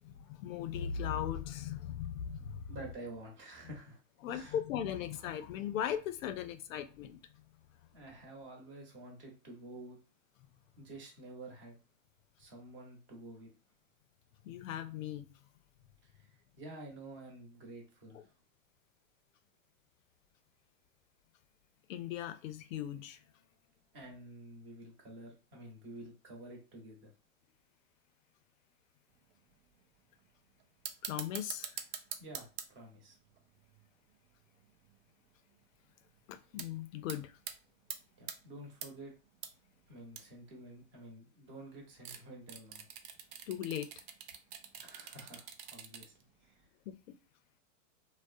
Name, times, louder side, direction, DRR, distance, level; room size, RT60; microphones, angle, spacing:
voice 1, 0.0-2.6 4.2-7.2 14.4-15.3 18.1-18.2 21.9-23.2 31.0-31.8 36.3-37.3 43.5-44.0 46.9-47.2, left 9 dB, 80° left, 0.5 m, -38 dB
voice 2, 2.7-4.0 4.3-4.6 7.9-10.0 10.8-11.8 12.4-13.5 16.0-16.3 16.6-18.3 23.9-27.1 32.2-33.2 38.2-39.1 39.9-42.8 44.8-46.1 46.4-46.6, right 2 dB, 30° right, 0.9 m, -50 dB
sound 1, 29.3-29.4 29.8-30.2 30.6-35.1 35.5-35.6 35.9-36.2 36.6-36.7 37.0-37.5 37.9-38.4 38.8-39.5 39.8-39.9 40.1-40.4 42.0-46.2 46.5-46.6, right 9 dB, 55° right, 0.5 m, -45 dB
2.3 x 2.0 x 2.5 m
hypercardioid pair, 130°, 39 cm